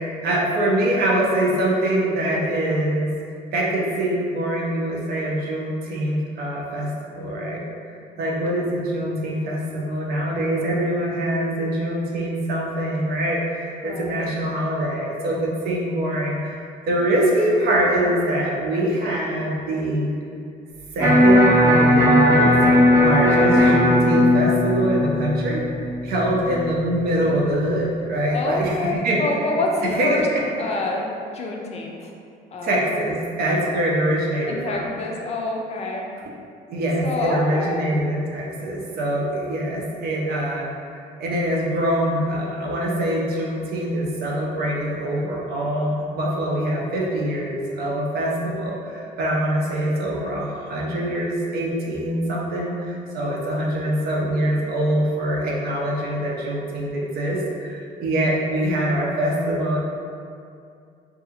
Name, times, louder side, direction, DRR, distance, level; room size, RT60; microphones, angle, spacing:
voice 1, 0.2-3.1 3.5-7.6 8.2-13.4 13.8-16.4 16.9-20.1 21.0-22.6 23.0-25.6 26.1-29.2 29.8-30.4 32.6-34.9 36.7-40.7 41.2-48.8 49.2-52.7 53.1-57.4 58.0-59.8, right 1 dB, 65° right, -3 dB, 0.6 m, -23 dB
voice 2, 13.8-14.3 28.3-30.3 30.6-32.1 32.5-32.7 34.4-36.0 37.0-37.9, left 2 dB, 40° left, 0 dB, 0.4 m, -27 dB
Electric guitar, 21.0-27.0, left 1 dB, 20° right, 0.8 m, -17 dB
2.6 x 2.4 x 2.8 m, 2.4 s
cardioid pair, 110°, 17 cm